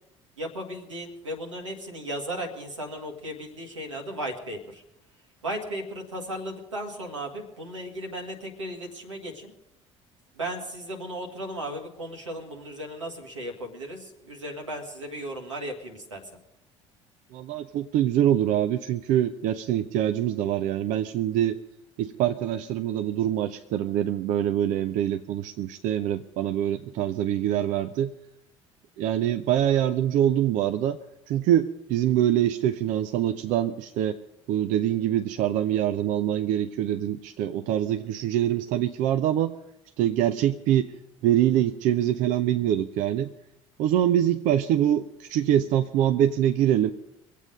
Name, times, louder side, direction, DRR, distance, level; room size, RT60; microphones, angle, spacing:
voice 1, 0.4-4.8 5.4-9.5 10.3-16.2, right 1 dB, 85° right, 1 dB, 1.9 m, -36 dB
voice 2, 17.3-21.6 22.0-28.1 29.0-31.0 31.3-34.2 34.5-39.6 40.0-40.9 41.2-43.3 43.8-46.9, right 11 dB, 55° right, 8 dB, 0.6 m, -24 dB
23.5 x 8.4 x 5.2 m, 0.84 s
figure-of-eight pair, 55°, 15 cm